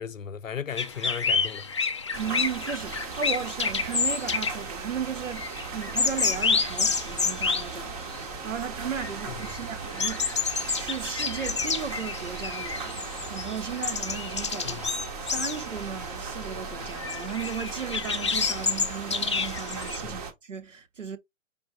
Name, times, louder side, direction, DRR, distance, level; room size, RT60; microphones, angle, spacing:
voice 1, 0.0-1.7 9.3-9.5 14.6-14.8 20.0-20.2, left 8 dB, 85° left, 0.6 m, -36 dB
sound 1, 0.7-8.6 8.8-20.0, left 5 dB, 25° left, 0.4 m, -30 dB
sound 2, 2.1-20.3, right 5 dB, 30° right, 0.9 m, -38 dB
voice 2, 2.1-14.8 15.2-21.2, right 7 dB, 75° right, 1.0 m, -36 dB
5.2 x 4.2 x 2.2 m
figure-of-eight pair, 120°, 38 cm